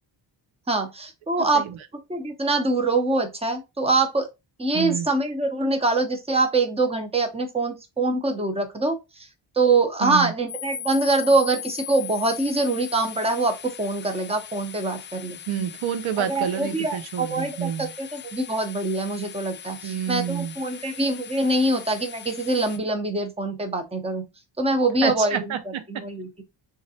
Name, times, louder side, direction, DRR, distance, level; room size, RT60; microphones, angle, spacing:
voice 1, 0.7-1.6 2.1-4.3 4.6-9.3 9.6-15.4 16.2-17.7 18.0-24.2 24.6-25.5 25.9-26.4, right 2 dB, 15° right, 0.7 m, -24 dB
voice 2, 1.4-1.7 4.7-5.1 10.0-10.3 15.5-17.9 19.8-20.5 25.0-26.0, right 9 dB, 85° right, 0.7 m, -28 dB
sound 1, 10.5-22.8, left 10 dB, 25° left, 0.5 m, -39 dB
3.8 x 3.2 x 2.7 m
wide cardioid pair, 115°, 46 cm